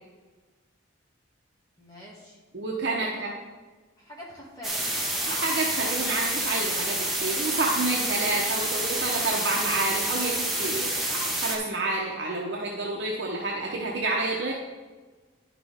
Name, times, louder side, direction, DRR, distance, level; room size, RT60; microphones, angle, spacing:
voice 1, 1.8-2.4 3.0-3.4 4.0-5.0, equal, 20° left, -5 dB, 2.0 m, -45 dB
voice 2, 2.5-3.3 5.3-14.5, right 2 dB, 60° right, -2 dB, 0.8 m, -29 dB
sound 1, 4.6-11.6, right 1 dB, ahead, 0.9 m, -28 dB
9.7 x 6.0 x 3.5 m, 1.3 s
head